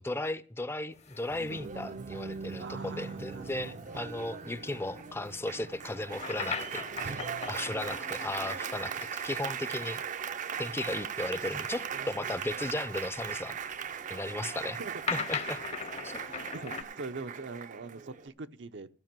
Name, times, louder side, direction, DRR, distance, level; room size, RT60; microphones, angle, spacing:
voice 1, 0.0-10.0 10.6-13.7 14.1-14.8 15.1-15.6 16.0-16.1, left 2 dB, 15° left, 0.5 m, -36 dB
sound 1, 0.9-9.9 10.2-10.3 11.2-16.8, left 5 dB, 40° left, 0.8 m, -41 dB
Applause, 1.3-18.3, right 7 dB, 45° right, 0.5 m, -39 dB
voice 2, 2.6-3.8 14.8-15.0 16.1-18.9, right 3 dB, 80° right, 0.7 m, -42 dB
sound 2, 2.7-8.0, left 3 dB, 80° left, 1.2 m, -55 dB
14.5 x 5.3 x 7.5 m
head